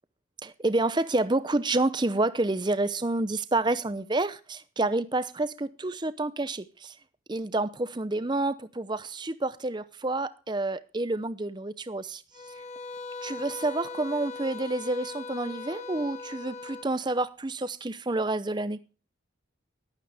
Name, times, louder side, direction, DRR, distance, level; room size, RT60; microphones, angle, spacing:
voice 1, 0.4-6.9 7.3-12.2 13.2-18.8, right 2 dB, 20° right, 0.6 m, -29 dB
sound 1, 12.3-16.9, left 3 dB, 35° left, 1.0 m, -40 dB
14.5 x 12.0 x 3.5 m
head